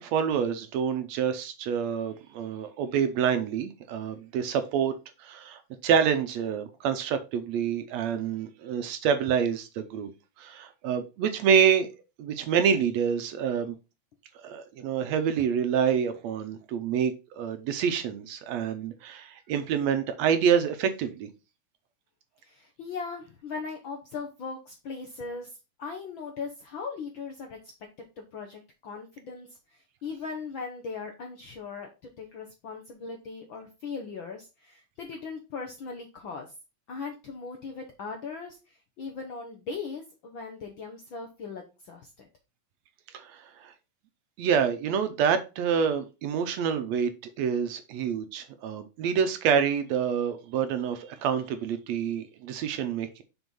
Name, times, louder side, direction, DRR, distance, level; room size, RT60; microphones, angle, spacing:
voice 1, 0.0-10.1 10.4-11.9 12.2-13.8 14.4-21.3 43.1-43.7 44.4-47.1 47.4-53.2, right 7 dB, 75° right, 1.8 m, -27 dB
voice 2, 22.4-27.6 28.2-36.5 36.9-42.3, left 4 dB, 65° left, 1.2 m, -39 dB
6.3 x 4.4 x 5.3 m
omnidirectional pair, 3.4 m